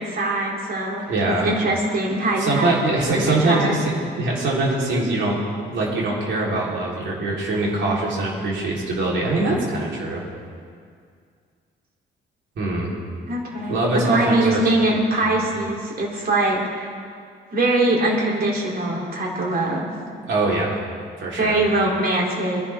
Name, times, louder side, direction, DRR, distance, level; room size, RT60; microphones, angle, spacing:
voice 1, 0.0-1.0 1.4-3.7 13.3-16.9 17.5-19.9 21.4-22.6, right 2 dB, 50° right, -2 dB, 3.5 m, -22 dB
voice 2, 1.1-1.5 2.4-10.2 12.6-12.9 13.7-14.6 15.3-15.4 20.3-20.8 21.2-21.6, right 2 dB, 70° right, -4 dB, 4.1 m, -23 dB
22.5 x 11.0 x 3.7 m, 2.2 s
cardioid pair, 90°, 20 cm